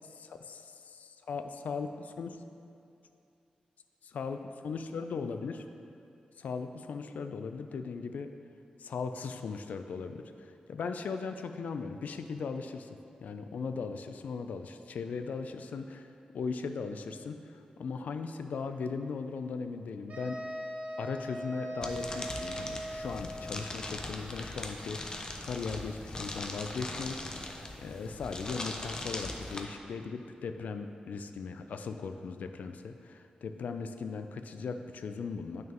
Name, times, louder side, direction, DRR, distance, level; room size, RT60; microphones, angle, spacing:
voice 1, 0.3-2.4 4.0-5.7 6.4-8.3 8.8-16.1 16.3-20.4 21.0-27.2 27.8-35.7, left 5 dB, 80° left, 8 dB, 0.4 m, -38 dB
sound 1, 20.1-23.8, right 1 dB, 60° right, 0.9 m, -40 dB
sound 2, 21.8-29.6, left 2 dB, 30° left, 0.5 m, -40 dB
8.8 x 6.2 x 3.0 m, 2.6 s
wide cardioid pair, 140°, 3 cm